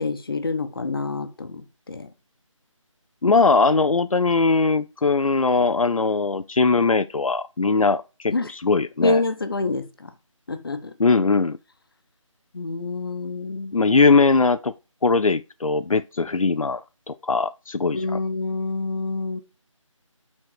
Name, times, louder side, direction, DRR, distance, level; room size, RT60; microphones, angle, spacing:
voice 1, 0.0-2.1 8.3-8.5 9.0-10.1 10.5-10.9 12.5-13.8 17.9-19.4, left 3 dB, 45° left, 1.1 m, -27 dB
voice 2, 3.2-9.2 11.0-11.6 13.7-14.7 15.0-18.0, left 4 dB, 85° left, 0.6 m, -20 dB
8.0 x 4.3 x 4.8 m
figure-of-eight pair, 165°, 17 cm